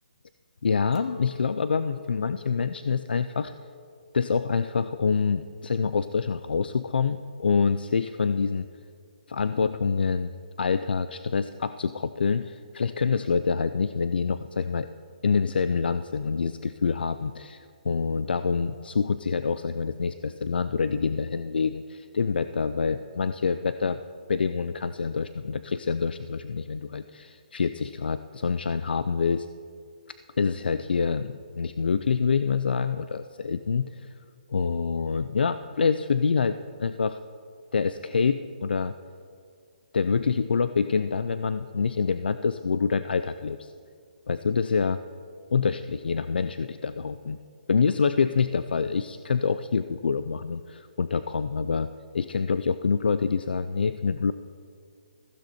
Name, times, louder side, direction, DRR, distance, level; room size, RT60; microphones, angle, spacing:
voice 1, 0.6-3.5 4.1-8.7 9.3-10.3 10.6-14.9 15.2-24.0 24.3-29.5 30.4-34.1 34.5-37.2 37.7-38.9 39.9-43.7 44.3-45.0 45.5-47.4 47.7-51.9 52.1-54.3, left 5 dB, 80° left, 12 dB, 0.5 m, -26 dB
Chink clink, 0.9-6.3, left 6 dB, 35° left, 1.0 m, -48 dB
15.5 x 15.0 x 4.3 m, 2.2 s
hypercardioid pair, 160°, 5 cm